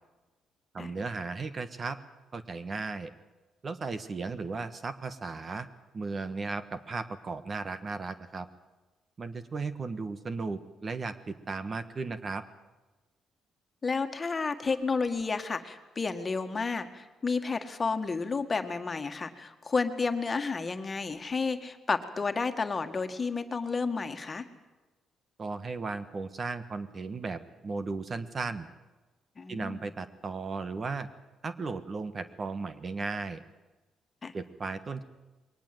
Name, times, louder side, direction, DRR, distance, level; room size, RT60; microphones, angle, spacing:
voice 1, 0.7-2.0 2.3-3.1 3.6-5.7 5.9-8.5 9.2-12.4 25.4-28.7 29.5-31.1 31.4-33.4 34.3-35.0, right 4 dB, 40° right, 12 dB, 1.4 m, -35 dB
voice 2, 13.8-24.5 29.4-29.9 34.2-34.3, left 4 dB, 30° left, 8 dB, 1.9 m, -31 dB
22.0 x 19.0 x 7.9 m, 1.2 s
cardioid pair, 90°, 0 cm